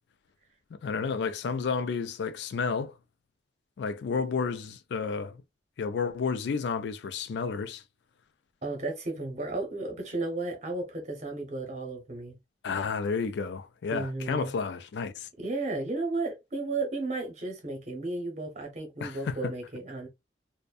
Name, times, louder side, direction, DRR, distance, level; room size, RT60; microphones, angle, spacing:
voice 1, 0.8-2.9 3.8-5.4 5.8-7.8 12.6-15.3 19.0-19.5, left 5 dB, 70° left, 0.3 m, -31 dB
voice 2, 8.6-12.3 13.9-14.5 15.4-20.1, right 2 dB, 40° right, 0.8 m, -34 dB
2.6 x 2.1 x 2.3 m
head